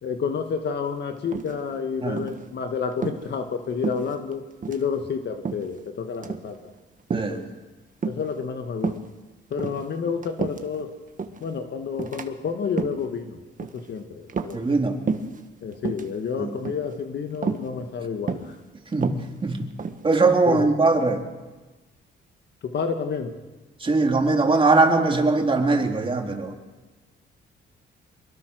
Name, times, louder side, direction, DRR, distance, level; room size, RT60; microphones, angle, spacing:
voice 1, 0.0-6.6 7.1-7.5 8.0-9.0 9.5-10.9 11.4-13.4 13.7-14.7 15.6-18.5 20.5-20.7 22.6-23.4, left 6 dB, 60° left, 6 dB, 1.8 m, -30 dB
sound 1, 1.3-1.8 2.2-2.4 2.9-3.2 3.8-4.4 4.6-4.8 5.4-5.8 6.1-6.5 7.1-7.4 8.0-8.4 8.8-9.1 9.5-10.8 11.2-11.5 12.0-12.3 12.6-13.1 13.6-13.9 14.3-14.8 15.1-15.4 15.7-16.1 16.6-17.0 17.4-17.7 18.3-18.6 18.9-20.1, right 5 dB, 40° right, 1.6 m, -30 dB
voice 2, 7.1-7.5 14.5-15.0 16.4-16.5 18.9-19.7 20.0-21.2 23.8-26.5, right 3 dB, 25° right, 2 dB, 3.3 m, -21 dB
24.0 x 22.0 x 6.3 m, 1.2 s
cardioid pair, 90°, 20 cm